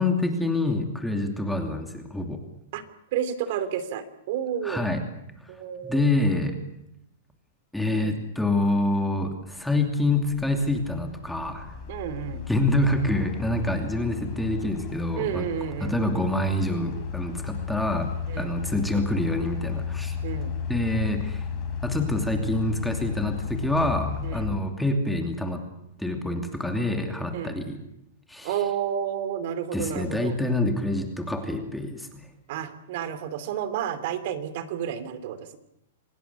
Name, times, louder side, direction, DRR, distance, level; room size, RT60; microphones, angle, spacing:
voice 1, 0.0-2.4 4.6-5.0 5.8-6.6 7.7-11.7 12.5-15.5 15.8-20.2 20.7-21.5 21.8-25.7 26.0-27.8 28.3-28.5 29.7-32.2, left 2 dB, ahead, 4 dB, 2.7 m, -26 dB
voice 2, 3.1-4.9 5.5-6.1 7.9-8.2 11.9-12.4 15.2-16.0 18.3-18.6 20.2-20.6 24.2-24.6 27.3-27.6 28.4-30.4 32.5-35.6, right 9 dB, 50° right, 13 dB, 2.8 m, -31 dB
sound 1, 9.4-24.6, left 6 dB, 30° left, 5.5 m, -34 dB
27.0 x 18.5 x 8.3 m, 0.80 s
hypercardioid pair, 155°, 0 cm